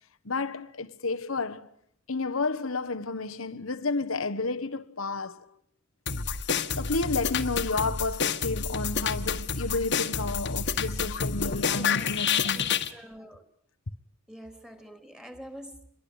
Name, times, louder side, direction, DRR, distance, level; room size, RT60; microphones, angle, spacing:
voice 1, 0.2-1.7 2.1-5.4 6.7-12.7, left 3 dB, 85° left, 1.4 m, -31 dB
sound 1, 6.1-12.9, left 6 dB, 60° left, 1.8 m, -29 dB
voice 2, 11.7-12.2 12.4-13.4 14.3-15.9, equal, 5° right, 3.5 m, -45 dB
27.5 x 22.5 x 8.9 m
head